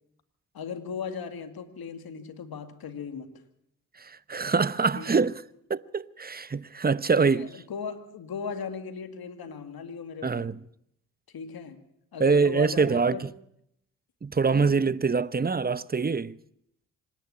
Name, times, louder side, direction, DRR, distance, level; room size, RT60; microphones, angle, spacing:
voice 1, 0.5-3.3 4.9-5.2 7.2-10.5 11.3-11.8 12.1-13.3 14.5-14.8, left 6 dB, 75° left, 2.2 m, -37 dB
voice 2, 3.9-5.4 5.7-7.5 10.2-10.6 12.2-13.3 14.2-16.4, right 4 dB, 25° right, 0.8 m, -24 dB
25.5 x 10.5 x 9.9 m
supercardioid pair, 45°, 37 cm